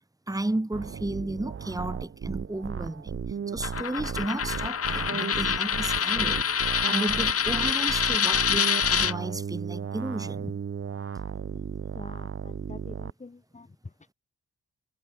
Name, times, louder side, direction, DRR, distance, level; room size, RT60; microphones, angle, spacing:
voice 1, 0.3-10.6, right 2 dB, 10° right, 1.8 m, -33 dB
sound 1, 0.7-13.1, right 7 dB, 45° right, 0.9 m, -35 dB
Coin (dropping), 3.6-9.1, left 7 dB, 45° left, 0.9 m, -26 dB
voice 2, 11.9-13.7, left 3 dB, 25° left, 1.2 m, -46 dB
cardioid pair, 60°, 31 cm